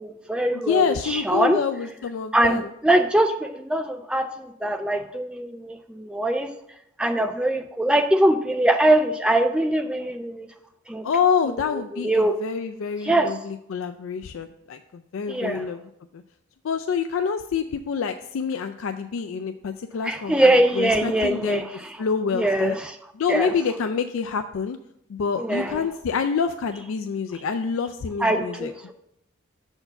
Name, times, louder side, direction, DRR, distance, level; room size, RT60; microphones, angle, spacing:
voice 1, 0.0-1.6 2.3-6.5 7.0-10.5 10.9-11.0 11.9-12.3 13.0-13.3 15.3-15.6 20.0-21.6 22.3-22.9 23.3-23.5 25.4-25.8 28.2-28.9, right 1 dB, 5° right, 5 dB, 0.4 m, -22 dB
voice 2, 0.5-2.7 11.0-15.8 16.1-16.2 16.6-21.6 22.0-22.8 23.1-24.8 25.1-28.9, left 6 dB, 80° left, 8 dB, 0.4 m, -27 dB
6.7 x 4.5 x 5.8 m, 0.78 s
head